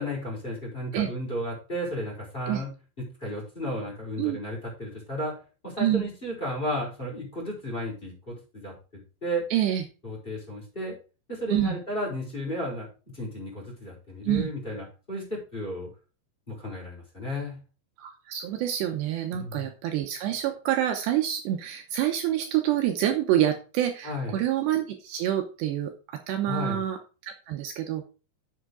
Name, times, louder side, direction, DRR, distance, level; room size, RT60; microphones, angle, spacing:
voice 1, 0.0-2.7 3.2-5.3 5.6-8.7 9.2-9.4 10.0-11.0 11.3-12.9 13.1-15.9 16.5-17.6 19.3-19.6 24.0-24.4 26.5-26.8, equal, 10° left, -4 dB, 5.2 m, -33 dB
voice 2, 9.5-9.9 11.5-11.8 14.2-14.5 18.0-28.1, right 12 dB, 75° right, 5 dB, 2.9 m, -27 dB
7.9 x 7.8 x 4.9 m, 0.33 s
omnidirectional pair, 5.2 m